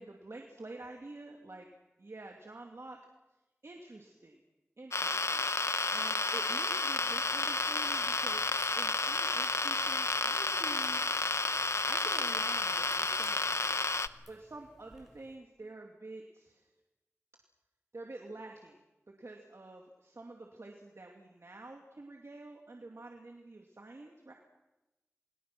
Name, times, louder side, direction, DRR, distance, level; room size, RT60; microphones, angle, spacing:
voice 1, 0.0-1.7 2.0-3.0 3.6-4.4 4.8-8.5 8.7-11.0 11.9-16.7 17.9-24.3, right 2 dB, 75° right, 1 dB, 2.6 m, -48 dB
sound 1, 4.9-14.1, left 3 dB, 75° left, 0.8 m, -31 dB
Liquid, 6.8-15.3, equal, 5° right, 6.5 m, -58 dB
29.5 x 22.5 x 6.2 m, 0.99 s
wide cardioid pair, 50°, 5 cm